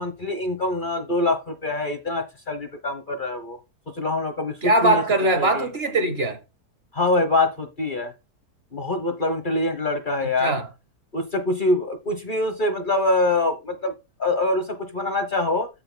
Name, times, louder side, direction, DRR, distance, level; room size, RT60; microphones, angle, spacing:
voice 1, 0.0-3.6 3.9-5.0 5.3-5.7 6.9-8.1 8.7-10.5 11.1-13.9 14.2-15.7, left 2 dB, 35° left, 1.1 m, -24 dB
voice 2, 4.6-6.4 10.4-10.7, right 2 dB, 45° right, 1.3 m, -21 dB
14.5 x 5.5 x 2.2 m
omnidirectional pair, 1.6 m